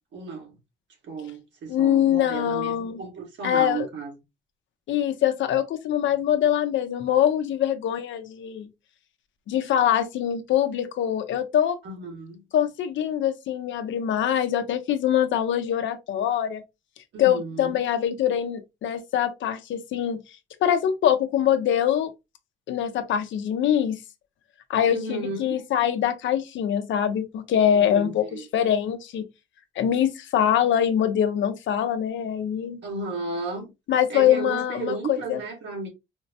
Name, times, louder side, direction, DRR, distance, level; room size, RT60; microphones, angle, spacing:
voice 1, 0.1-0.5 1.1-4.1 11.8-12.4 17.1-17.8 24.9-25.6 27.7-28.4 32.8-33.7 34.1-35.9, right 3 dB, 65° right, 1.6 m, -34 dB
voice 2, 1.7-3.0 3.4-3.9 4.9-8.7 9.5-11.8 12.5-16.6 17.2-20.2 20.6-22.1 22.7-24.0 24.7-29.3 29.8-32.8 33.9-35.4, left 10 dB, 75° left, 0.7 m, -23 dB
4.3 x 2.0 x 2.7 m
cardioid pair, 90°, 20 cm